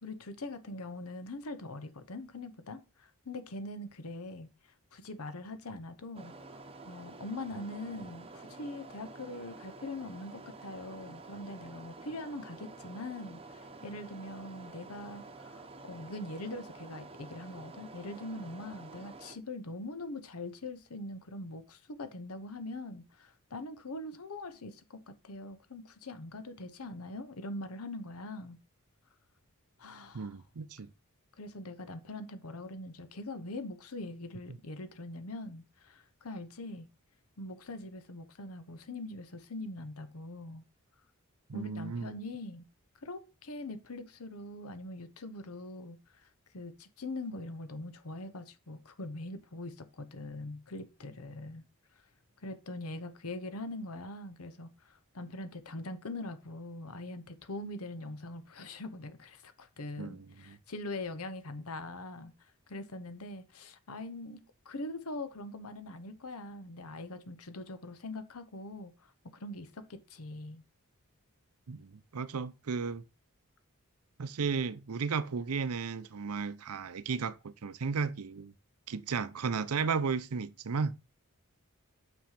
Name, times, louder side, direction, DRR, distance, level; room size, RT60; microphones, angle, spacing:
voice 1, 0.0-4.5 4.9-28.6 29.8-30.4 31.4-36.9 37.4-40.6 41.5-42.7 43.0-46.3 46.5-51.6 52.4-62.3 62.7-70.6, left 2 dB, 80° left, 1.0 m, -42 dB
sound 1, 6.1-19.3, right 3 dB, 25° right, 0.9 m, -49 dB
voice 2, 30.1-30.9 34.5-34.6 41.5-42.1 60.0-60.6 71.7-73.0 74.2-78.5 78.9-81.0, right 5 dB, 85° right, 0.6 m, -34 dB
6.0 x 5.5 x 5.7 m
head